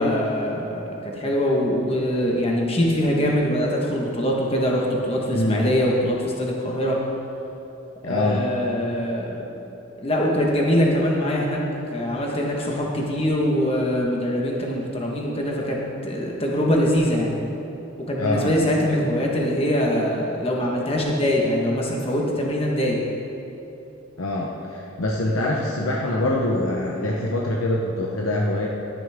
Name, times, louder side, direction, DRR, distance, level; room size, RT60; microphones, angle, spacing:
voice 1, 0.0-7.0 8.0-9.4 10.0-11.6 11.9-17.3 18.1-23.0, equal, 30° left, -2 dB, 1.4 m, -23 dB
voice 2, 5.3-5.7 8.0-8.4 18.2-18.5 24.2-28.7, left 1 dB, 85° left, -2 dB, 1.0 m, -24 dB
12.5 x 10.0 x 3.7 m, 2.9 s
head